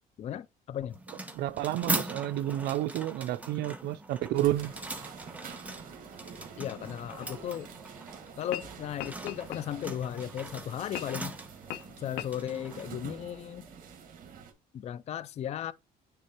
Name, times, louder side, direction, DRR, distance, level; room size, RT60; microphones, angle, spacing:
voice 1, 0.2-1.0 6.6-7.7 8.4-11.3 12.0-13.7 14.7-15.7, left 10 dB, 40° left, 0.4 m, -36 dB
sound 1, 0.9-14.0, right 2 dB, 10° right, 1.1 m, -41 dB
voice 2, 1.4-4.7, right 14 dB, 75° right, 0.4 m, -30 dB
sound 2, 4.3-14.5, right 7 dB, 55° right, 1.7 m, -48 dB
sound 3, 7.2-7.3 8.3-8.7 9.0-10.0 10.9-11.3 11.7-11.8 12.1-12.3, left 13 dB, 80° left, 0.6 m, -39 dB
9.6 x 3.6 x 2.9 m
cardioid pair, 110°, 17 cm